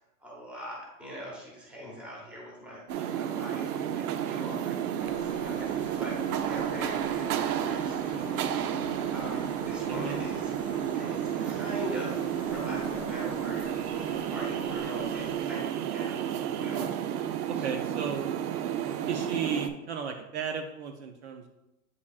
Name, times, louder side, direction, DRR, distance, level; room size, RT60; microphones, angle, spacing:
voice 1, 0.2-6.2 6.4-8.5 9.1-10.5 10.9-13.7 14.2-16.9 17.6-17.7, equal, 5° right, -4 dB, 0.8 m, -42 dB
sound 1, 2.9-19.7, right 10 dB, 90° right, 0.6 m, -31 dB
sound 2, 5.0-15.4, left 8 dB, 60° left, 0.6 m, -45 dB
voice 2, 9.9-10.2 17.5-18.3 19.1-21.5, right 6 dB, 50° right, 5 dB, 0.5 m, -34 dB
8.3 x 4.8 x 2.4 m, 0.94 s
supercardioid pair, 170°, 44 cm